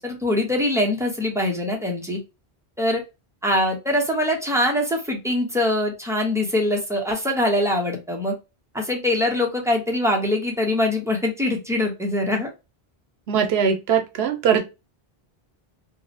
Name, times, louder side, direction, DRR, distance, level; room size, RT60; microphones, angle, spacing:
voice 1, 0.0-2.2 2.8-3.0 3.4-8.3 8.7-12.5, left 1 dB, 5° right, 0.4 m, -23 dB
voice 2, 13.3-14.6, right 7 dB, 80° right, 0.8 m, -21 dB
2.7 x 2.0 x 2.5 m
omnidirectional pair, 1.0 m